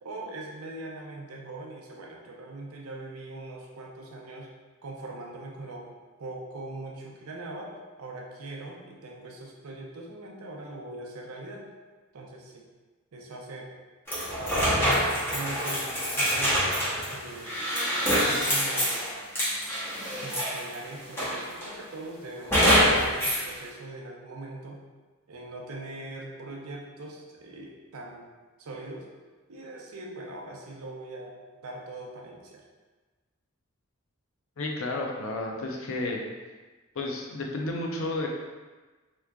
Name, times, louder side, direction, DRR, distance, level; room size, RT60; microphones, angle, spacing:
voice 1, 0.0-4.5 4.8-5.9 6.2-11.6 12.1-12.6 13.1-13.7 14.4-15.0 15.3-15.9 16.1-16.7 17.0-17.5 18.1-19.0 20.2-24.8 25.3-28.3 28.6-29.1 29.5-31.4 31.6-32.6, right 2 dB, 85° right, 0 dB, 0.6 m, -41 dB
sound 1, 14.1-20.7 21.2-21.8 22.5-23.4, equal, 10° left, 0.7 m, -25 dB
voice 2, 34.6-36.2 37.0-38.3, left 2 dB, 65° left, 0 dB, 0.5 m, -31 dB
3.6 x 3.0 x 2.2 m, 1.3 s
head